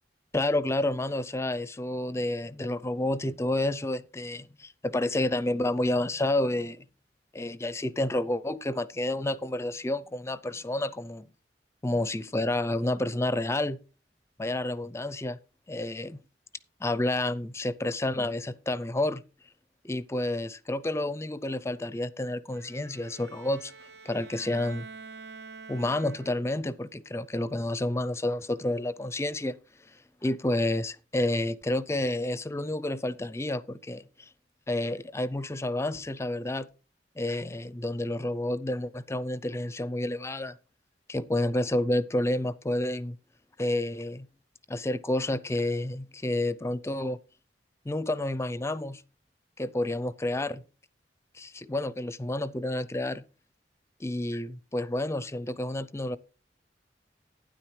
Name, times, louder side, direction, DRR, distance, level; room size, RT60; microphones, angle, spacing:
voice 1, 0.3-6.8 7.3-11.3 11.8-13.8 14.4-15.4 15.7-16.2 16.8-19.2 19.8-23.7 24.0-24.9 25.7-29.6 30.2-34.3 34.7-36.7 37.2-40.6 41.1-43.2 43.6-44.3 44.7-47.2 47.9-49.0 49.6-50.6 51.3-53.2 54.0-56.2, left 1 dB, 15° left, 0.5 m, -30 dB
Bowed string instrument, 22.5-26.7, right 4 dB, 80° right, 0.8 m, -47 dB
12.0 x 9.7 x 3.2 m
head